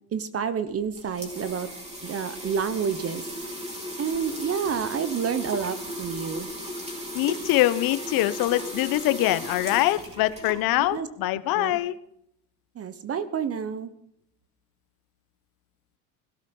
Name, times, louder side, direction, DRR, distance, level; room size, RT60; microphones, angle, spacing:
voice 1, 0.1-1.7 2.0-3.2 4.0-6.5 10.9-11.1 11.5-11.8 12.7-13.9, right 7 dB, 35° right, 13 dB, 1.1 m, -29 dB
sound 1, 0.7-11.0, equal, 15° right, 4.4 m, -36 dB
voice 2, 7.1-12.0, left 16 dB, 60° left, 15 dB, 1.1 m, -24 dB
17.0 x 12.0 x 5.5 m, 0.73 s
supercardioid pair, 95°, 39 cm